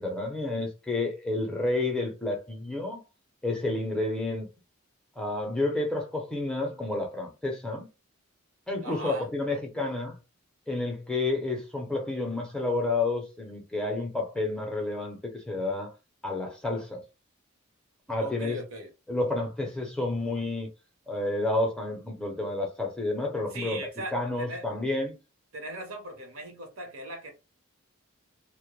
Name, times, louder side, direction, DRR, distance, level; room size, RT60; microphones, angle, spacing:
voice 1, 0.0-3.0 3.4-4.5 5.2-7.9 8.7-10.2 10.7-15.9 16.2-17.0 18.1-18.6 19.1-20.7 21.1-23.8 24.1-25.1, left 2 dB, 5° left, 0.5 m, -30 dB
voice 2, 8.8-9.3 18.2-18.9 23.5-24.7 25.5-27.3, right 1 dB, 70° right, 0.9 m, -39 dB
2.1 x 2.1 x 2.9 m
head